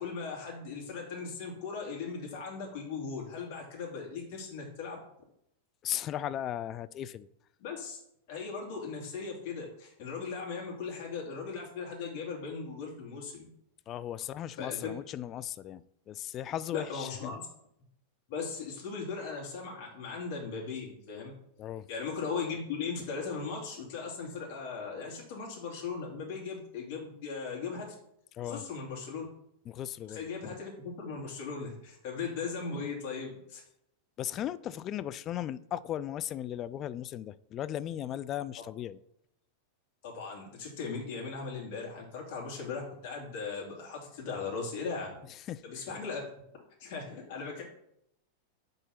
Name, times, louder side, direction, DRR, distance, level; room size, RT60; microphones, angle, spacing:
voice 1, 0.0-5.0 7.6-8.0 8.3-13.5 14.6-14.8 16.7-17.4 18.3-21.3 21.9-27.9 28.4-29.3 30.1-33.6 40.0-45.2 45.6-46.3 46.8-47.6, left 5 dB, 50° left, 2.5 m, -38 dB
voice 2, 5.8-7.3 13.9-17.4 21.6-21.9 28.3-28.7 29.7-30.6 34.2-39.0 45.4-45.9, left 11 dB, 30° left, 0.3 m, -37 dB
6.3 x 3.9 x 5.8 m
figure-of-eight pair, 90°, 0 cm